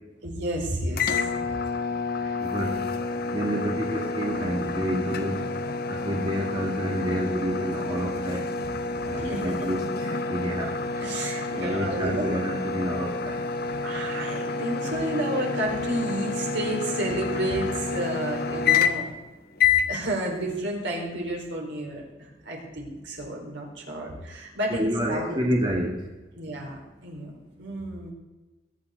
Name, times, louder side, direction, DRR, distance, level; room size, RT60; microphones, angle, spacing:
voice 1, 0.2-1.3 2.1-2.4 8.6-8.7 9.1-9.5 11.0-12.4 13.8-19.1 19.9-25.4 26.4-27.3 27.6-28.1, right 1 dB, 65° right, -1 dB, 4.6 m, -31 dB
sound 1, 1.0-19.2 19.6-19.9, left 4 dB, 55° left, 1.0 m, -29 dB
voice 2, 2.4-2.8 3.3-5.4 5.9-8.5 9.1-10.7 11.5-13.4 24.7-26.0, equal, 25° right, -1 dB, 1.8 m, -29 dB
21.0 x 9.9 x 4.0 m, 1.1 s
head